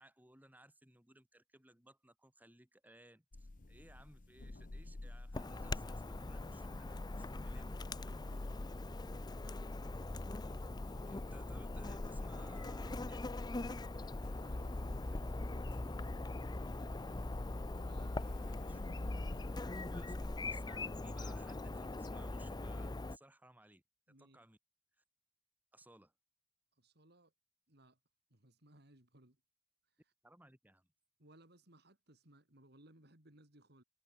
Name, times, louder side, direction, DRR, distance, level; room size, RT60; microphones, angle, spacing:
voice 1, 0.0-8.2 11.0-13.3 18.4-19.6 19.9-23.8 24.2-24.6 25.0-25.1 25.7-26.1 30.2-30.9, right 1 dB, 10° right, 4.1 m, -62 dB
sound 1, 3.3-19.6, left 2 dB, 45° left, 0.9 m, -47 dB
Chirp tweet / Buzz, 5.3-23.2, left 2 dB, 20° left, 0.6 m, -42 dB
voice 2, 14.3-17.0 17.7-18.5 24.1-24.4 26.8-27.3 27.7-28.0 28.3-29.4 31.2-33.8, right 1 dB, 60° right, 4.3 m, -64 dB
head